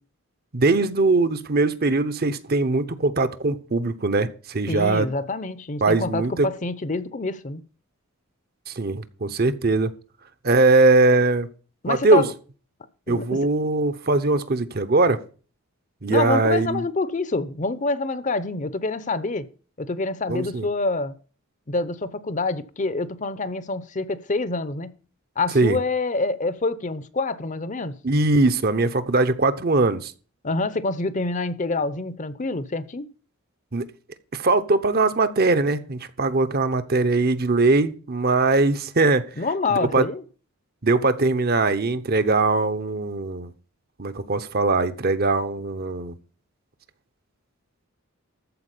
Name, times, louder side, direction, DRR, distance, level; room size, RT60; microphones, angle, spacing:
voice 1, 0.5-5.1 5.8-6.5 8.7-9.9 10.4-11.5 11.9-12.3 13.1-15.2 16.0-16.8 20.3-20.7 25.5-25.8 28.0-30.1 33.7-33.9 34.3-39.3 39.7-40.0 40.8-43.5 44.0-46.1, right 3 dB, 45° right, 0.8 m, -21 dB
voice 2, 4.7-7.6 11.8-12.3 13.1-13.4 16.1-19.5 19.8-21.1 21.7-25.0 25.4-28.0 30.4-33.1 39.4-40.2, left 3 dB, 35° left, 0.7 m, -26 dB
14.0 x 4.8 x 8.3 m
head